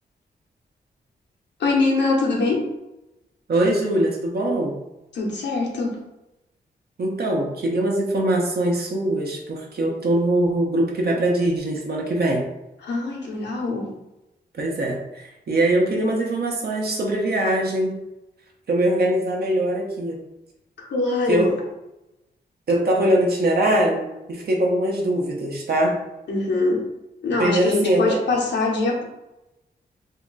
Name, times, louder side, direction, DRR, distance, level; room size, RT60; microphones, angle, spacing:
voice 1, 1.6-2.7 5.1-6.0 12.8-14.0 20.8-21.6 26.3-26.9 27.2-29.0, left 3 dB, 80° left, -2 dB, 0.9 m, -23 dB
voice 2, 3.5-4.8 7.0-12.4 14.6-18.0 18.7-20.2 21.3-21.5 22.7-26.0 27.4-28.2, right 1 dB, 60° right, 0 dB, 0.8 m, -22 dB
2.8 x 2.3 x 3.9 m, 0.94 s
cardioid pair, 80°, 18 cm